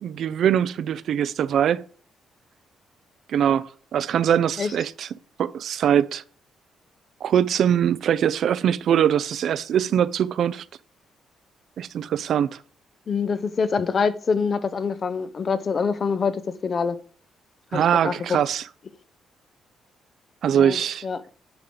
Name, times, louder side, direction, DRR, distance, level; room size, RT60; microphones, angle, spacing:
voice 1, 0.0-1.8 3.3-5.1 5.4-6.2 7.2-10.6 11.8-12.6 17.7-18.6 20.4-21.0, right 9 dB, 65° right, 0.5 m, -22 dB
voice 2, 13.1-17.0 17.7-18.4 20.5-20.8 21.0-21.2, left 5 dB, 45° left, 0.8 m, -25 dB
10.0 x 3.8 x 6.8 m
cardioid pair, 90°, 0 cm